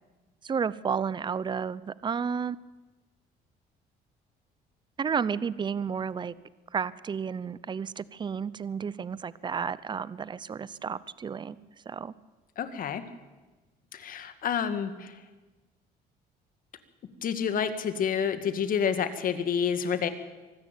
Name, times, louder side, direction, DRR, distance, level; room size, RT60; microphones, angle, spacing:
voice 1, 0.4-2.7 5.0-6.3 6.7-11.6 11.9-12.1, right 6 dB, 25° right, 19 dB, 0.7 m, -32 dB
voice 2, 12.6-13.0 13.9-15.2 17.2-20.1, left 7 dB, 55° left, 10 dB, 1.9 m, -29 dB
24.0 x 13.5 x 9.0 m, 1.2 s
cardioid pair, 110°, 17 cm